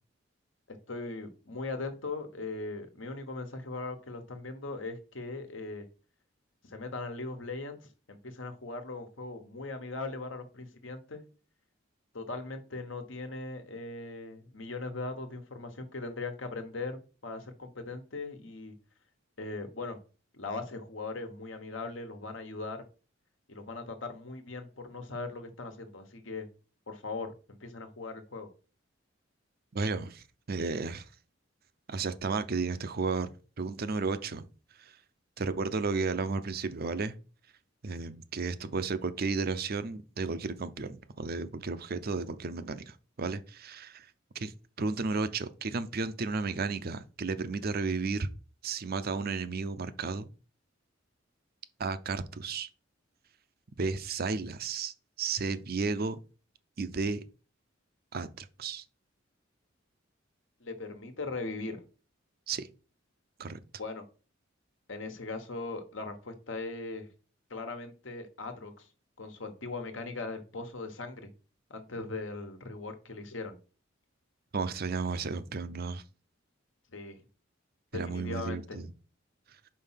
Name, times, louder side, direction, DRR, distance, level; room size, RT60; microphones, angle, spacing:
voice 1, 0.7-5.8 6.6-7.8 8.1-11.2 12.1-18.7 19.4-20.0 20.3-22.8 23.5-26.5 26.9-28.5 60.6-61.8 63.8-64.1 64.9-67.1 67.5-68.9 69.2-71.3 71.7-73.6 76.9-77.2 77.9-78.8, left 3 dB, 70° left, 1.3 m, -39 dB
voice 2, 29.7-31.1 31.9-34.4 34.8-35.0 35.4-37.1 37.8-44.1 44.3-44.5 44.8-48.3 48.6-50.3 51.8-52.7 53.8-56.2 56.8-57.2 58.1-58.8 62.5-62.7 63.4-63.6 74.5-76.0 77.9-78.9, right 4 dB, 50° right, 0.6 m, -33 dB
5.4 x 4.3 x 5.7 m
head